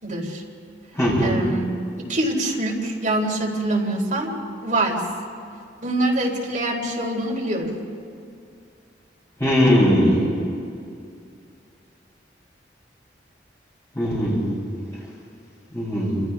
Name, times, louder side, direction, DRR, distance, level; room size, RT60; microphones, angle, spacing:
voice 1, 0.0-0.4 1.2-1.7 2.0-4.4 4.6-5.0 5.8-7.8, right 1 dB, 45° right, -2 dB, 3.6 m, -24 dB
voice 2, 0.9-1.3 9.4-10.2 13.9-14.6 15.7-16.2, equal, 15° left, -6 dB, 7.7 m, -19 dB
29.5 x 27.0 x 3.5 m, 2.4 s
head